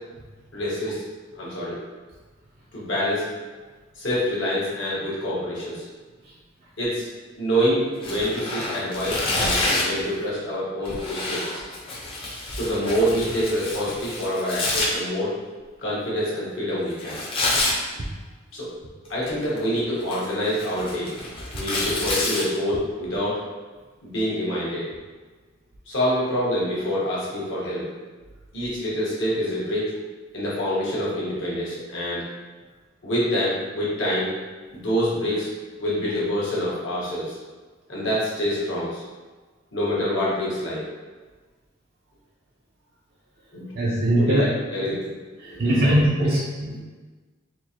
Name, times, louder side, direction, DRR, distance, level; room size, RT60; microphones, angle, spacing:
voice 1, 0.5-1.0 1.4-1.8 2.7-3.2 4.0-5.8 6.8-7.0 7.4-11.6 12.5-15.3 15.8-17.2 18.5-18.7 19.1-21.1 21.5-23.4 24.0-24.8 25.9-27.9 28.5-29.9 30.3-32.3 33.0-34.3 34.7-35.5 35.8-37.4 37.9-39.0 39.7-40.8 43.5-43.7 44.2-45.1 45.4-46.3, equal, 65° left, -7 dB, 1.3 m, -26 dB
Tearing, 8.0-10.0 10.8-14.9 17.0-17.8 19.0-19.6 20.0-22.4, left 2 dB, 25° left, 0.6 m, -28 dB
voice 2, 43.7-44.4 45.4-46.8, right 1 dB, 50° right, -6 dB, 0.5 m, -21 dB
4.2 x 2.5 x 2.9 m, 1.3 s
head